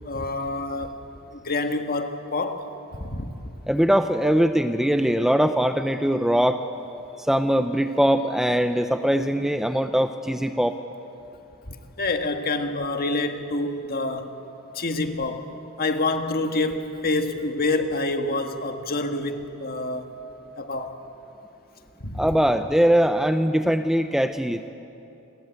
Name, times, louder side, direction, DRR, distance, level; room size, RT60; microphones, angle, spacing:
voice 1, 0.0-1.0 1.4-2.7 3.0-3.3 11.7-14.3 14.7-15.5 15.8-20.2 20.6-20.9 22.0-22.3, left 2 dB, 45° left, 6 dB, 1.7 m, -27 dB
voice 2, 3.7-6.6 7.2-10.8 22.1-24.7, equal, ahead, 8 dB, 0.6 m, -21 dB
28.0 x 21.5 x 8.2 m, 2.9 s
head